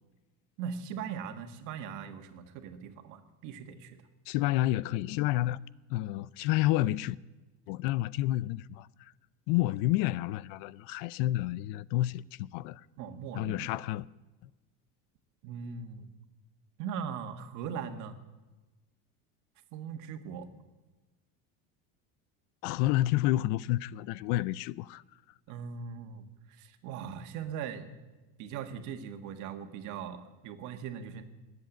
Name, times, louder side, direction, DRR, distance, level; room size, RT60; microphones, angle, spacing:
voice 1, 0.6-4.0 13.0-13.7 15.4-16.1 16.8-18.2 19.7-20.5 25.5-28.0 28.4-31.2, right 7 dB, 55° right, 1.7 m, -40 dB
voice 2, 4.3-5.6 5.9-7.2 7.7-9.1 9.5-12.8 13.3-14.1 22.6-25.0, left 16 dB, 65° left, 0.5 m, -29 dB
20.0 x 7.9 x 9.0 m
cardioid pair, 160°, 36 cm